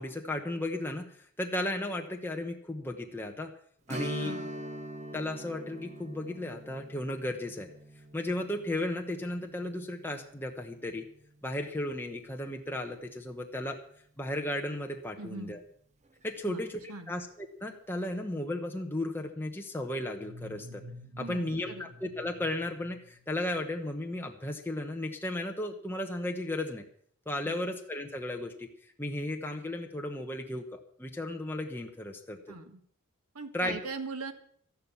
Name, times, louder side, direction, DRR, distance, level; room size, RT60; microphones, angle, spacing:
voice 1, 0.0-3.5 3.9-4.3 5.1-7.7 8.1-11.1 11.4-13.8 14.2-15.6 16.2-20.8 21.2-26.8 27.3-28.7 29.0-32.4 33.5-33.8, left 1 dB, 10° left, 2 dB, 1.0 m, -35 dB
Strum, 3.9-13.1 13.4-13.5 16.1-16.2 16.7-16.8, right 1 dB, 30° right, 1.1 m, -44 dB
voice 2, 4.2-4.5 15.2-15.6 16.4-17.1 21.2-21.9 27.4-27.7 32.5-32.8 33.3-34.3, right 3 dB, 90° right, 7 dB, 1.7 m, -41 dB
sound 1, 20.1-23.8, left 1 dB, 70° right, 1.8 m, -49 dB
13.5 x 11.5 x 7.0 m, 0.63 s
head